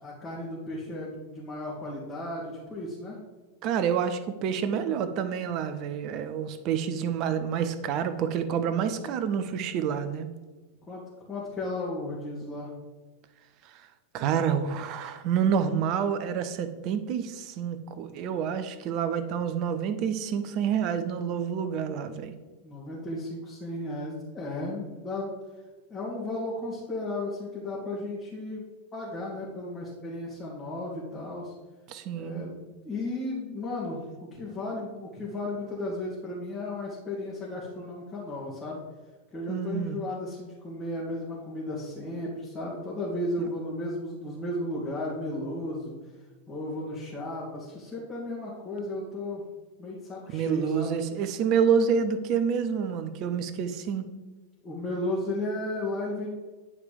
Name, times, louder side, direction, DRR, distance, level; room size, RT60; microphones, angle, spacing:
voice 1, 0.0-3.2 10.9-12.7 22.6-25.3 25.9-28.6 28.9-31.5 32.1-38.8 39.3-46.0 46.5-49.4 49.8-51.0 54.6-56.3, left 1 dB, 20° left, -7 dB, 2.6 m, -34 dB
voice 2, 3.6-10.3 13.6-13.9 14.1-22.4 31.9-32.4 39.5-40.0 43.4-43.5 50.3-54.1, right 7 dB, 40° right, 10 dB, 0.8 m, -28 dB
10.0 x 4.9 x 5.0 m, 1.3 s
figure-of-eight pair, 90°, 0 cm